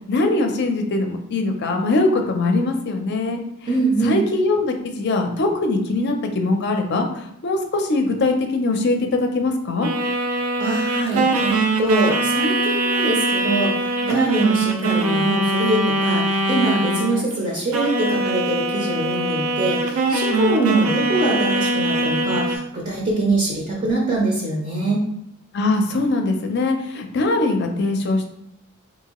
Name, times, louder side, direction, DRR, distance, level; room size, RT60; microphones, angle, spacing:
voice 1, 0.0-3.4 4.0-9.9 25.5-28.3, left 2 dB, 50° left, 4 dB, 0.5 m, -21 dB
voice 2, 3.7-4.2 10.6-25.0, right 2 dB, 35° right, -3 dB, 0.6 m, -23 dB
sound 1, 9.8-17.4 17.7-22.6, right 2 dB, 80° right, 0.5 m, -22 dB
3.8 x 2.7 x 2.9 m, 0.77 s
head